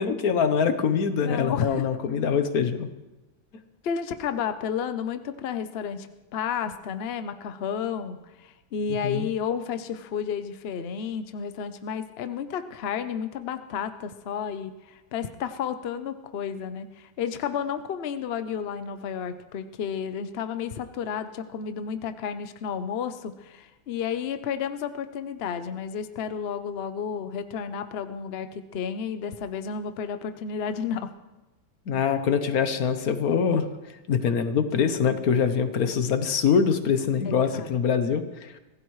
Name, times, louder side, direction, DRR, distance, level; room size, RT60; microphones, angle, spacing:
voice 1, 0.0-2.9 9.0-9.3 31.9-33.6 34.1-38.5, left 6 dB, 55° left, 9 dB, 1.3 m, -24 dB
voice 2, 1.2-1.9 3.8-6.1 6.3-31.1 37.2-37.8, left 7 dB, 80° left, 10 dB, 0.5 m, -32 dB
25.0 x 16.0 x 3.2 m, 1.1 s
omnidirectional pair, 2.1 m